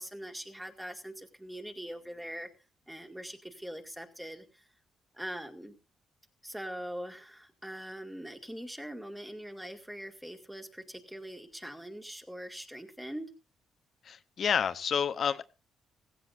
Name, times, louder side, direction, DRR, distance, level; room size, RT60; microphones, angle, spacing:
voice 1, 0.0-2.5 2.9-4.7 5.1-5.7 6.4-13.3, equal, 5° right, 5 dB, 2.0 m, -42 dB
voice 2, 14.0-15.4, left 7 dB, 55° left, 13 dB, 0.8 m, -29 dB
16.0 x 15.5 x 2.6 m, 0.29 s
cardioid pair, 85°, 0 cm